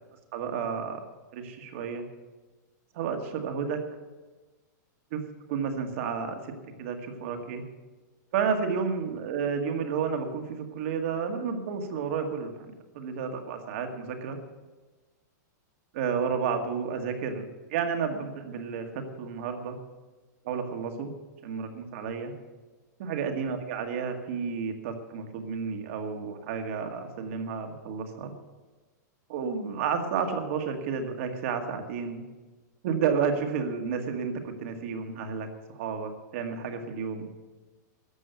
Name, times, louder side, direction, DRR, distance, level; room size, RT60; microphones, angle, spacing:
voice 1, 0.3-1.0 1.3-2.0 2.9-3.8 5.1-5.2 5.5-6.5 6.8-7.6 8.3-12.7 12.9-14.4 15.9-17.4 17.7-19.8 20.4-21.1 21.4-22.3 23.0-28.3 29.3-32.2 32.8-37.3, right 6 dB, 45° right, 4 dB, 2.0 m, -31 dB
13.5 x 7.7 x 9.3 m, 1.2 s
supercardioid pair, 175°, 10 cm